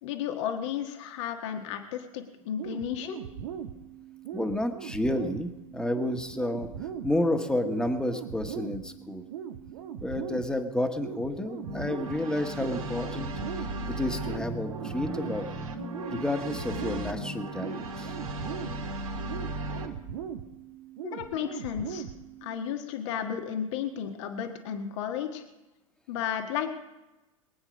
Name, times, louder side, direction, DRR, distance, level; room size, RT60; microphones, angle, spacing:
voice 1, 0.0-3.2 21.0-22.0 22.4-25.4 26.1-26.7, left 9 dB, 55° left, 5 dB, 1.6 m, -33 dB
sound 1, 2.6-22.6, right 8 dB, 65° right, 1.3 m, -40 dB
voice 2, 4.3-6.7 7.0-9.2 10.0-13.3 13.8-15.6 16.1-18.1, left 1 dB, 5° left, 5 dB, 1.6 m, -30 dB
sound 2, 11.6-19.9, right 1 dB, 80° right, 2.9 m, -36 dB
23.0 x 9.0 x 5.3 m, 1.1 s
hypercardioid pair, 95°, 18 cm